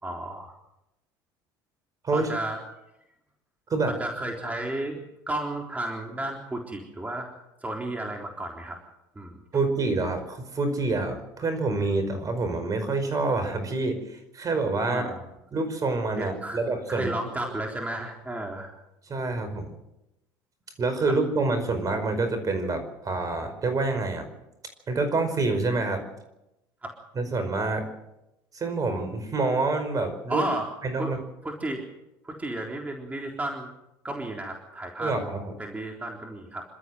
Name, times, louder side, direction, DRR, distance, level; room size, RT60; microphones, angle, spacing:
voice 1, 0.0-0.5 2.1-2.6 3.9-5.0 5.3-7.3 7.6-8.8 9.2-9.4 14.8-15.2 16.2-16.6 16.9-18.7 21.0-21.2 26.8-26.9 30.3-30.7 31.0-31.1 31.4-31.9 32.2-33.7 34.0-35.1 35.6-36.6, right 1 dB, 15° right, 1 dB, 3.8 m, -33 dB
voice 2, 9.5-15.2 15.5-17.2 17.4-17.5 19.1-19.7 20.8-24.3 24.9-26.0 27.1-27.9 28.5-30.4 30.8-31.2 35.0-35.5, right 3 dB, 35° right, 9 dB, 5.1 m, -27 dB
28.0 x 13.0 x 7.8 m, 0.90 s
hypercardioid pair, 80°, 10 cm